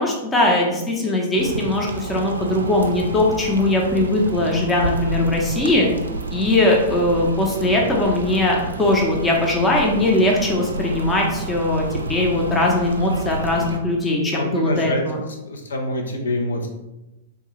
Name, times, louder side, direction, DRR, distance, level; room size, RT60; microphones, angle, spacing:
voice 1, 0.0-5.9 6.3-15.2, left 1 dB, 15° left, -1 dB, 0.6 m, -20 dB
sound 1, 1.4-13.8, right 2 dB, 75° right, 0.3 m, -30 dB
voice 2, 14.3-15.0 15.5-16.7, left 1 dB, 70° left, 2 dB, 0.5 m, -25 dB
3.5 x 2.3 x 2.9 m, 0.97 s
figure-of-eight pair, 100°, 0 cm